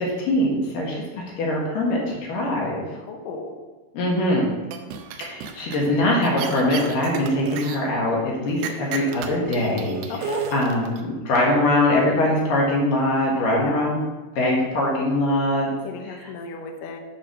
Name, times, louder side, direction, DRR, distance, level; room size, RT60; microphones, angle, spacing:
voice 1, 0.0-2.8 3.9-4.4 5.2-10.0 10.5-14.0 14.4-15.7, left 1 dB, 60° left, -3 dB, 2.6 m, -22 dB
voice 2, 2.9-3.5 10.1-10.5 13.4-13.9 15.8-17.0, left 4 dB, 85° left, 3 dB, 1.9 m, -34 dB
sound 1, 4.7-5.9 6.2-7.8 8.6-11.0, right 8 dB, 75° right, 2.5 m, -32 dB
8.6 x 4.9 x 6.2 m, 1.3 s
omnidirectional pair, 5.5 m